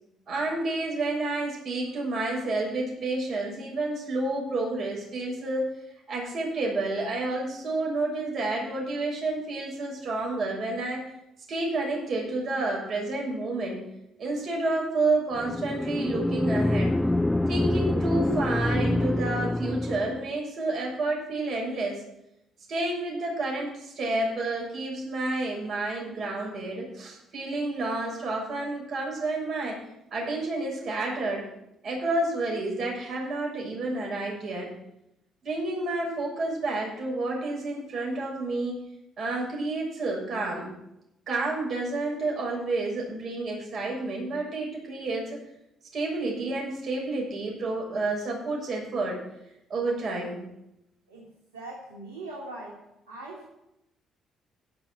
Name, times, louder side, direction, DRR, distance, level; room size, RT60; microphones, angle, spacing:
voice 1, 0.3-5.6 6.1-11.0 11.5-13.8 14.2-17.0 17.5-22.0 22.7-29.8 30.1-31.5 31.8-34.7 35.4-38.8 39.2-40.7 41.3-45.4 45.9-49.2 49.7-50.4, right 2 dB, 55° right, -2 dB, 6.7 m, -30 dB
sound 1, 15.4-20.3, left 1 dB, 10° left, 0.3 m, -26 dB
voice 2, 51.1-52.8 53.1-53.5, right 2 dB, 90° right, -3 dB, 2.3 m, -41 dB
15.5 x 6.1 x 7.9 m, 0.85 s
hypercardioid pair, 50°, 0 cm